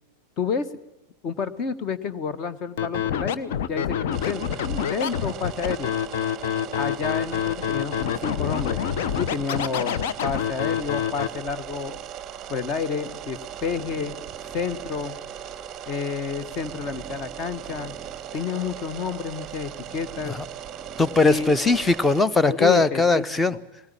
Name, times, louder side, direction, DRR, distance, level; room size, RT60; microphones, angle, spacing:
voice 1, 0.4-0.8 1.2-5.9 6.7-8.8 9.2-12.0 12.5-14.2 14.5-15.2 15.9-17.9 18.3-20.4 21.2-21.5 22.4-23.2, left 5 dB, 35° left, 13 dB, 1.3 m, -30 dB
Scratching (performance technique), 2.8-11.3, left 9 dB, 50° left, 0.9 m, -27 dB
sound 1, 4.1-22.2, right 10 dB, 30° right, 0.8 m, -38 dB
voice 2, 21.0-23.5, left 3 dB, 10° left, 16 dB, 0.8 m, -20 dB
21.0 x 19.0 x 8.7 m, 0.94 s
figure-of-eight pair, 90°, 0 cm